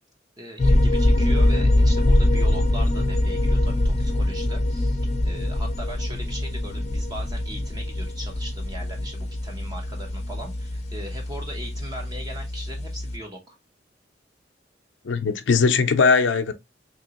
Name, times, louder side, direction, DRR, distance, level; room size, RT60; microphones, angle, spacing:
voice 1, 0.4-13.6, equal, 20° right, 0.7 m, -39 dB
sound 1, 0.6-13.2, left 1 dB, 35° left, 0.5 m, -23 dB
voice 2, 15.0-16.5, left 5 dB, 90° left, 0.5 m, -19 dB
3.6 x 2.9 x 2.8 m
head